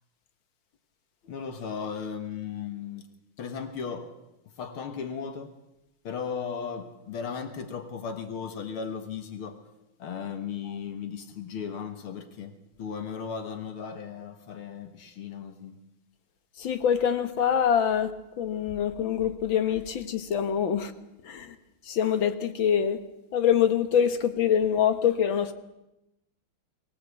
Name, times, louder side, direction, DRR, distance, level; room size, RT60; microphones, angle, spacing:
voice 1, 1.3-3.1 3.4-4.1 4.6-5.5 6.0-9.6 10.0-12.5 12.8-15.8, left 6 dB, 85° left, 8 dB, 2.4 m, -36 dB
voice 2, 16.6-18.1 18.4-20.9 21.2-21.6 21.8-23.0 23.3-25.5, left 8 dB, 65° left, 10 dB, 2.1 m, -25 dB
23.0 x 17.5 x 8.4 m, 0.91 s
omnidirectional pair, 2.3 m